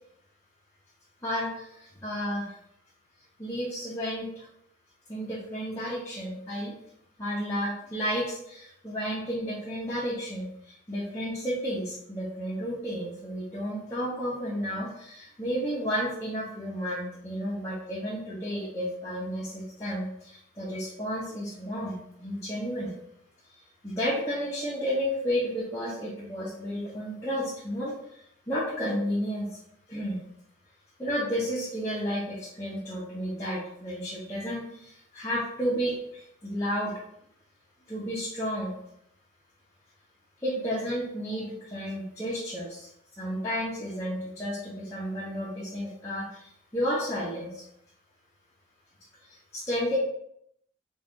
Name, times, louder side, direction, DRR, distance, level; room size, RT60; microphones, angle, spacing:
voice 1, 1.2-2.5 3.4-4.5 5.1-6.8 7.2-22.9 23.8-28.2 28.5-29.5 29.9-30.2 31.0-36.9 37.9-38.7 40.4-42.9 43.2-47.6 49.3-50.0, equal, 15° left, -10 dB, 0.8 m, -32 dB
3.9 x 2.4 x 3.6 m, 0.74 s
head